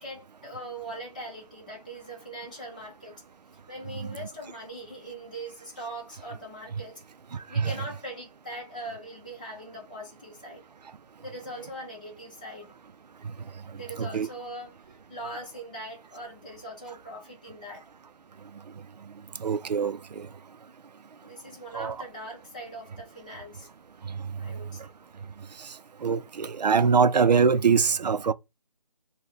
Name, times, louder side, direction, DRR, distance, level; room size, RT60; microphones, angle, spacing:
voice 1, 0.0-3.2 3.7-7.0 7.5-10.6 11.2-12.7 13.6-17.9 21.2-23.7 24.4-24.9, right 1 dB, 10° left, 0.7 m, -41 dB
voice 2, 14.0-14.3 19.4-20.3 21.7-22.0 26.0-28.3, right 5 dB, 75° right, 0.4 m, -23 dB
3.8 x 2.2 x 3.2 m
figure-of-eight pair, 170°, 21 cm